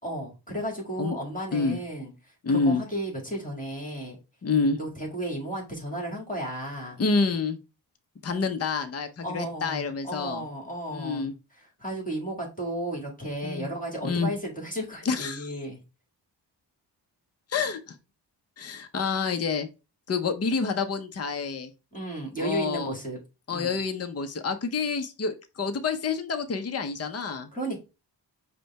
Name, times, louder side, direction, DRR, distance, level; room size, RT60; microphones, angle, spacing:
voice 1, 0.0-2.1 2.5-4.2 4.8-7.0 9.2-11.3 11.8-15.8 21.9-23.2 23.5-23.8 27.5-27.8, right 1 dB, 20° left, -1 dB, 1.9 m, -33 dB
voice 2, 2.4-2.8 4.4-4.8 7.0-7.6 8.2-10.4 10.9-11.3 13.4-13.7 14.0-14.3 15.0-15.6 17.5-18.0 18.6-19.7 20.1-21.7 22.4-23.0 23.5-27.5, left 4 dB, 35° left, 8 dB, 0.7 m, -28 dB
5.0 x 2.2 x 4.6 m, 0.29 s
cardioid pair, 65°, 43 cm